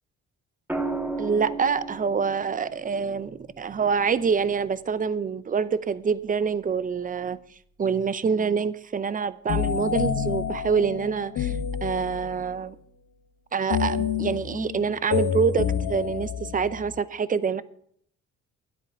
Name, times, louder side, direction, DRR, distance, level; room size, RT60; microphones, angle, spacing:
sound 1, 0.7-4.8 6.5-6.9, right 3 dB, 5° right, 1.1 m, -35 dB
voice 1, 1.2-7.4 7.8-12.8 13.5-17.6, right 6 dB, 25° right, 0.6 m, -26 dB
sound 2, 9.5-12.5 13.7-17.0, left 8 dB, 75° left, 1.1 m, -28 dB
9.9 x 8.4 x 6.7 m
cardioid pair, 90°, 30 cm